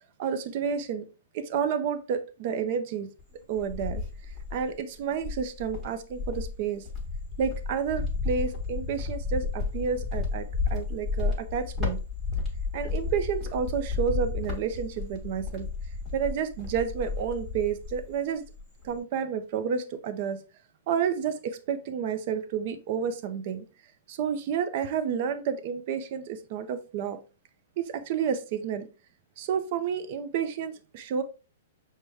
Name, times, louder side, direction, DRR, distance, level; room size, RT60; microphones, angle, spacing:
voice 1, 0.2-1.1 1.3-3.1 3.5-4.0 4.5-6.8 7.4-12.0 12.7-15.7 16.1-18.4 18.8-20.4 20.9-23.6 24.1-27.2 27.8-28.9 29.4-31.2, right 7 dB, 40° right, 0.4 m, -30 dB
Cricket, 3.2-4.7 5.2-18.1 18.4-19.0, left 4 dB, 5° right, 1.2 m, -32 dB
6.1 x 2.1 x 3.2 m
hypercardioid pair, 170°, 0 cm